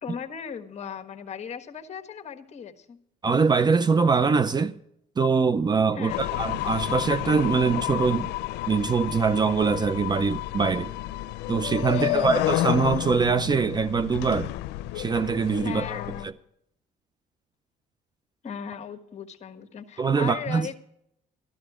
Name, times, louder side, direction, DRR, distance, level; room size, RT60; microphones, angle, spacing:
voice 1, 0.0-3.0 5.9-6.2 11.9-12.5 15.6-16.3 18.4-20.8, left 7 dB, 40° left, 1.4 m, -37 dB
voice 2, 3.2-4.8 5.2-8.3 8.7-10.9 11.5-14.5 14.9-15.9 16.2-16.3 20.0-20.7, right 5 dB, 25° right, 0.5 m, -23 dB
sound 1, 6.1-16.2, left 16 dB, 90° left, 0.6 m, -30 dB
13.5 x 12.5 x 4.9 m
cardioid pair, 110°, 17 cm